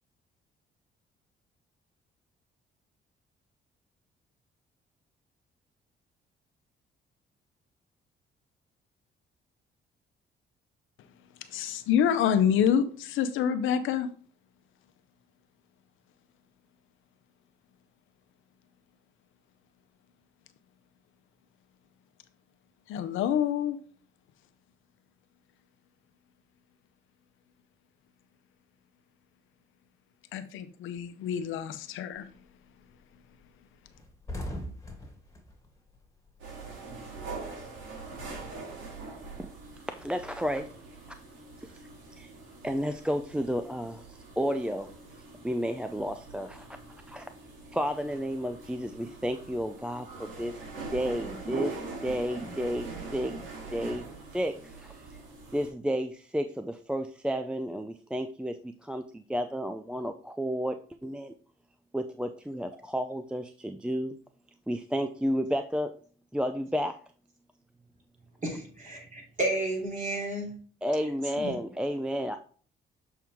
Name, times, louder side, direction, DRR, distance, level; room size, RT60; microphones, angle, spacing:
voice 1, 11.5-14.1 22.9-23.8 30.3-32.3, left 8 dB, 85° left, 10 dB, 0.7 m, -27 dB
sound 1, 32.2-32.5 32.9-33.0 33.3-33.4 33.7-36.7 37.0-38.7, left 1 dB, 15° left, 1.9 m, -41 dB
sound 2, 36.4-55.7, right 3 dB, 75° right, 2.9 m, -43 dB
voice 2, 40.0-40.7 41.6-41.7 42.2-42.3 42.6-45.0 45.4-46.7 47.1-47.3 47.7-50.5 50.9-53.4 53.7-54.0 54.3-55.0 55.5-61.3 61.9-64.2 64.7-65.9 66.3-67.0 70.8-72.4, equal, 5° right, 8 dB, 0.4 m, -32 dB
voice 3, 68.4-70.6 71.4-71.5, right 1 dB, 40° right, -1 dB, 3.7 m, -32 dB
7.2 x 4.6 x 3.5 m, 0.43 s
cardioid pair, 90°, 20 cm